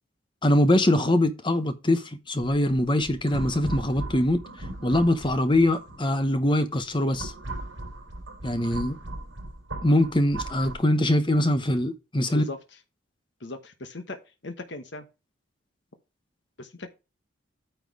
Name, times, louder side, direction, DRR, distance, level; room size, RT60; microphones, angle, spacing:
voice 1, 0.4-4.4 4.8-7.3 8.4-9.0 9.8-12.5, left 1 dB, 25° left, 1.0 m, -23 dB
sound 1, 2.4-6.3 6.8-10.7, right 2 dB, 65° right, 4.2 m, -37 dB
voice 2, 13.4-14.2 14.4-15.1 16.6-16.9, left 2 dB, 60° left, 1.1 m, -38 dB
9.3 x 4.6 x 4.7 m
head